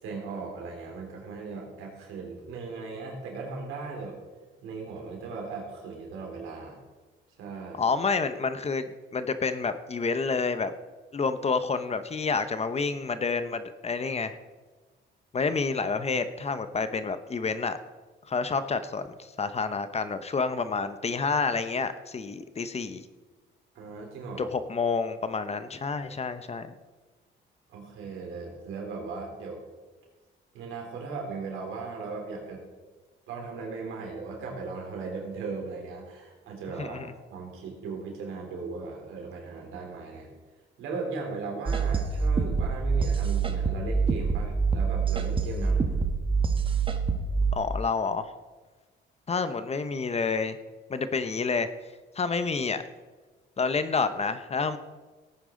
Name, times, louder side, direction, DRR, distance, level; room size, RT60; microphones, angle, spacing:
voice 1, 0.0-4.2 4.6-6.8 7.4-7.8 23.7-24.5 27.7-29.6 30.5-32.6 33.3-37.0 37.3-40.3 40.8-46.0, right 4 dB, 90° right, 0 dB, 3.4 m, -37 dB
voice 2, 7.8-10.7 11.1-14.4 15.3-17.8 18.3-23.0 24.4-26.7 36.8-37.1 47.5-48.3 49.3-50.6 50.9-51.7 52.2-52.8 53.6-54.8, left 4 dB, 30° left, 11 dB, 0.8 m, -29 dB
sound 1, 41.7-47.6, right 5 dB, 25° right, 1.3 m, -26 dB
17.0 x 9.2 x 3.8 m, 1.3 s
cardioid pair, 90°, 20 cm